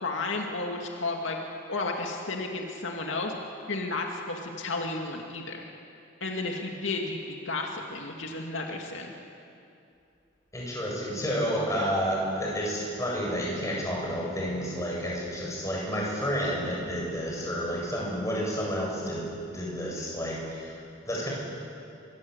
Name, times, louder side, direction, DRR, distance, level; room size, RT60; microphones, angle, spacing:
voice 1, 0.0-1.4 1.7-3.3 3.7-5.6 6.2-9.1, left 3 dB, 80° left, 1 dB, 2.4 m, -32 dB
voice 2, 10.5-20.7 21.1-21.3, equal, 15° left, -3 dB, 7.6 m, -30 dB
25.0 x 23.5 x 8.2 m, 2.6 s
head